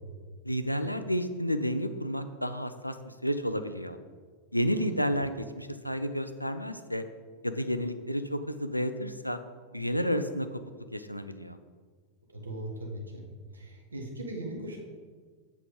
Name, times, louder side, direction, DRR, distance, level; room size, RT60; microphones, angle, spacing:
voice 1, 0.4-4.0 4.5-7.0 7.4-9.4 9.7-10.5 10.9-11.6, equal, 90° left, 10 dB, 0.5 m, -31 dB
voice 2, 12.3-13.3 13.5-14.8, right 1 dB, 75° right, 1 dB, 1.6 m, -39 dB
8.3 x 6.0 x 5.1 m, 1.5 s
figure-of-eight pair, 90°, 0 cm